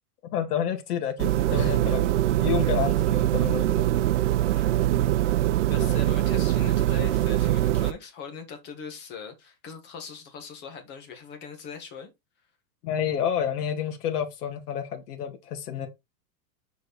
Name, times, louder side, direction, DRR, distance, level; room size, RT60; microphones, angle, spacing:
voice 1, 0.2-2.1 2.4-3.9 5.8-6.0 12.8-15.9, left 9 dB, 70° left, 2.1 m, -29 dB
sound 1, 1.2-7.9, right 13 dB, 50° right, 0.6 m, -23 dB
voice 2, 5.7-12.1, left 6 dB, 20° left, 1.5 m, -41 dB
6.9 x 4.8 x 4.0 m
supercardioid pair, 175°, 47 cm